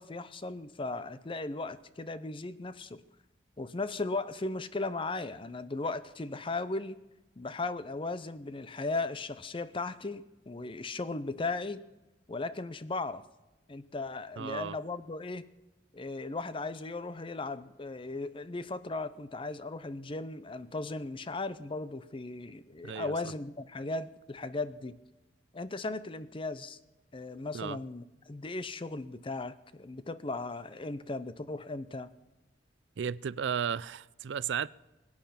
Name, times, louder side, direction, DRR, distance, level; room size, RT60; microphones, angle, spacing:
voice 1, 0.0-3.0 3.6-7.0 7.4-11.8 12.3-13.2 13.7-15.4 15.9-25.0 25.5-26.8 27.1-32.1, left 3 dB, 30° left, 0.6 m, -37 dB
voice 2, 14.4-14.8 22.8-23.3 27.5-27.8 33.0-34.7, right 7 dB, 85° right, 0.4 m, -34 dB
22.0 x 8.9 x 5.9 m
head